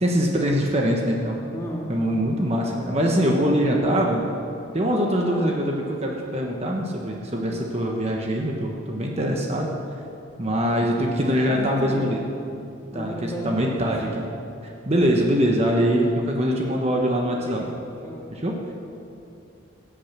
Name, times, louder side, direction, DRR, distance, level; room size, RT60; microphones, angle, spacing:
voice 1, 0.0-1.4 1.9-4.3 4.7-9.7 10.4-12.2 12.9-14.2 14.9-17.6 18.3-18.5, equal, 30° right, 0 dB, 1.3 m, -23 dB
voice 2, 1.5-2.4 5.2-5.5 7.2-7.5 11.3-12.1 12.9-14.3 17.2-17.7 18.0-18.3 18.5-18.7, equal, 15° left, -3 dB, 2.4 m, -34 dB
16.5 x 8.7 x 7.4 m, 2.6 s
head